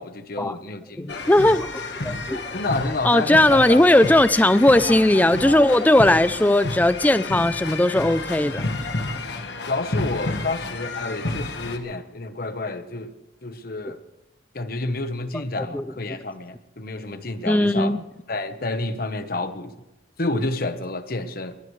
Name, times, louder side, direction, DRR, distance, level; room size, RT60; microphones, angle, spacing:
voice 1, 0.0-1.2 2.5-3.9 9.7-13.1 13.4-14.0 14.5-18.0 18.3-19.7 20.2-21.6, left 2 dB, 55° left, 10 dB, 1.1 m, -29 dB
voice 2, 1.0-1.7 2.0-2.4 3.0-8.6 15.3-15.4 15.7-15.8 17.5-18.0, left 1 dB, 10° left, 14 dB, 0.4 m, -18 dB
sound 1, 1.1-11.8, left 2 dB, 70° left, 1.4 m, -30 dB
22.0 x 18.5 x 3.2 m, 0.93 s
head